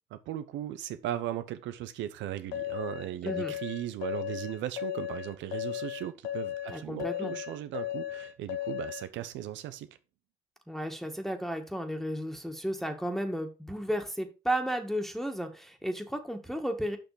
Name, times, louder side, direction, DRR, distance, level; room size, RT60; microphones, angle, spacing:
voice 1, 0.1-9.9, right 12 dB, 85° right, 0.8 m, -37 dB
sound 1, 2.5-9.1, left 12 dB, 90° left, 1.2 m, -36 dB
voice 2, 3.2-3.5 6.7-7.4 10.7-17.0, equal, ahead, 1.9 m, -33 dB
6.9 x 5.9 x 5.0 m
supercardioid pair, 45°, 19 cm